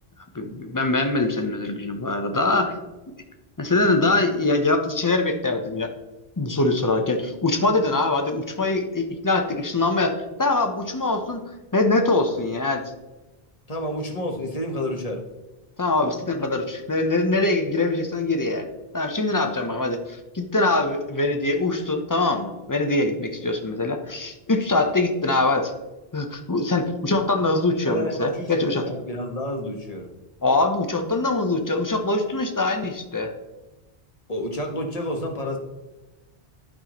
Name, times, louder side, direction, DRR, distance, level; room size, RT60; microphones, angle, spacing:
voice 1, 0.3-2.7 3.6-5.9 6.4-11.4 11.7-12.8 15.8-18.7 18.9-25.7 26.1-28.8 30.4-33.3, left 2 dB, 20° left, 5 dB, 0.7 m, -23 dB
voice 2, 13.7-15.2 27.9-30.1 34.3-35.6, equal, 40° left, 2 dB, 1.2 m, -30 dB
11.5 x 5.5 x 3.0 m, 1.1 s
omnidirectional pair, 1.0 m